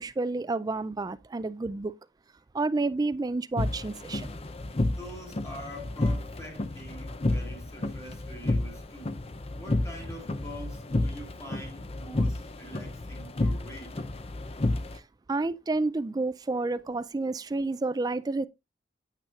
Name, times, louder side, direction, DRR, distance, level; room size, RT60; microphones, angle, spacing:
voice 1, 0.0-2.0 2.5-4.4 14.6-14.7 14.9-15.0 15.3-18.5, right 3 dB, 20° right, 0.3 m, -30 dB
sound 1, 3.6-15.0, left 2 dB, 35° left, 0.6 m, -31 dB
voice 2, 4.7-9.2 9.5-14.0, equal, 15° left, 3.2 m, -45 dB
9.0 x 7.9 x 2.4 m
head